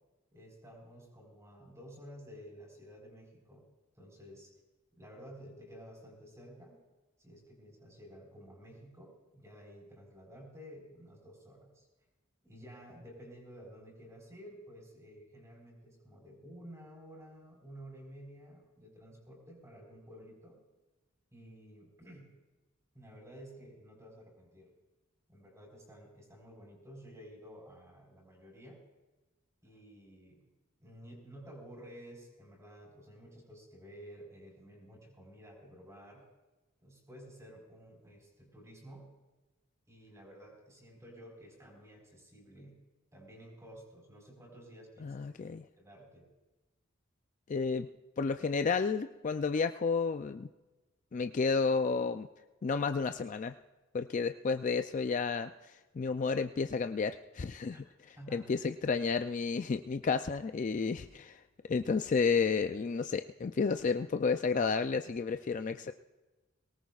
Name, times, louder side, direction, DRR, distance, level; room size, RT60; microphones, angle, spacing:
voice 1, 0.3-3.7 3.9-4.5 5.0-6.8 7.2-11.9 12.4-20.6 21.3-22.3 22.9-24.7 25.3-28.8 29.6-30.4 30.8-36.2 36.8-39.1 39.9-42.7 43.1-45.2 45.8-46.3 57.7-57.8 58.2-58.7, equal, 15° right, -1 dB, 4.5 m, -52 dB
voice 2, 45.0-45.6 47.5-47.9 48.2-50.5 51.1-52.3 52.6-53.5 53.9-57.8 58.3-61.4 61.7-65.9, left 5 dB, 40° left, 8 dB, 0.3 m, -31 dB
23.0 x 18.5 x 2.4 m, 1.1 s
head